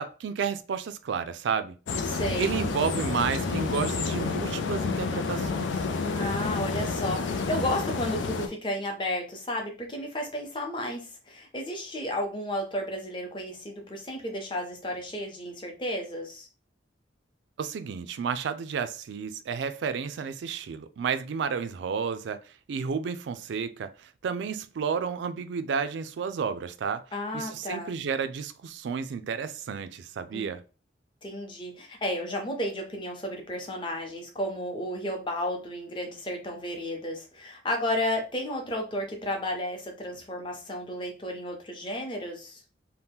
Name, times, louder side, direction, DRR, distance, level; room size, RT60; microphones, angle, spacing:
voice 1, 0.0-1.8 2.4-5.8 17.6-27.0 27.3-30.6, right 6 dB, 75° right, 0.3 m, -31 dB
sound 1, 1.9-8.5, left 4 dB, 85° left, 0.4 m, -29 dB
voice 2, 2.1-2.5 6.0-16.5 27.1-27.9 30.3-30.5 31.2-42.6, left 1 dB, 25° left, 0.6 m, -33 dB
2.8 x 2.1 x 3.4 m
head